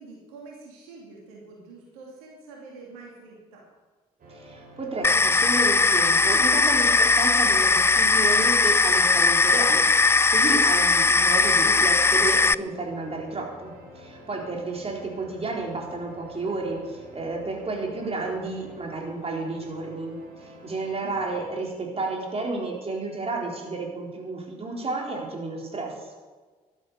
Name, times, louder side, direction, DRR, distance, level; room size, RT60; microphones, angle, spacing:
voice 1, 0.0-3.6 14.3-14.7 21.0-21.2, right 3 dB, 75° right, -2 dB, 2.8 m, -46 dB
sound 1, 4.2-21.5, equal, 50° right, 4.7 m, -48 dB
voice 2, 4.3-25.9, right 3 dB, 30° right, 0 dB, 4.0 m, -32 dB
sound 2, 5.0-12.5, left 4 dB, 15° left, 0.3 m, -19 dB
12.5 x 10.5 x 6.8 m, 1.4 s
figure-of-eight pair, 45°, 19 cm